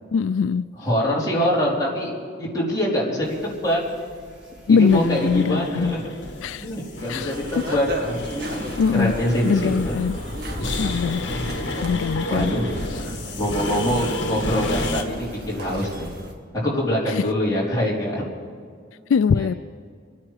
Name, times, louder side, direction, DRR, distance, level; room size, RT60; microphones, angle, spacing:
voice 1, 0.1-0.6 4.7-6.0 6.4-6.7 7.1-7.3 7.7-7.8 8.8-9.1 9.4-10.2 10.8-12.5 17.1-17.2 19.1-19.5, left 6 dB, 85° left, 15 dB, 0.3 m, -22 dB
voice 2, 0.8-3.8 4.7-6.1 6.6-8.2 8.9-10.0 11.3-11.4 12.3-12.7 13.4-16.1 16.6-18.2 19.3-19.5, equal, 20° left, -5 dB, 3.8 m, -24 dB
sound 1, 3.2-16.3, left 1 dB, 5° right, 4.1 m, -40 dB
sound 2, 4.9-15.0, left 2 dB, 70° left, 1.4 m, -31 dB
sound 3, 7.0-16.3, equal, 55° right, 1.8 m, -36 dB
27.5 x 9.6 x 4.9 m, 2.1 s
head